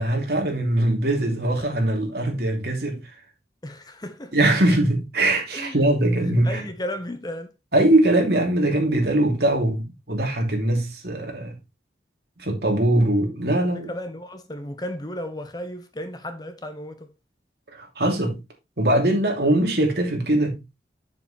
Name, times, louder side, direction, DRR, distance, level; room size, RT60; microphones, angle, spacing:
voice 1, 0.0-3.1 4.3-6.6 7.7-11.6 12.4-13.9 17.7-18.4 18.8-20.6, right 1 dB, 60° right, 2.8 m, -21 dB
voice 2, 3.6-4.3 5.5-5.8 6.2-7.5 13.6-17.1, left 1 dB, 25° left, 1.0 m, -34 dB
8.0 x 7.3 x 3.2 m
head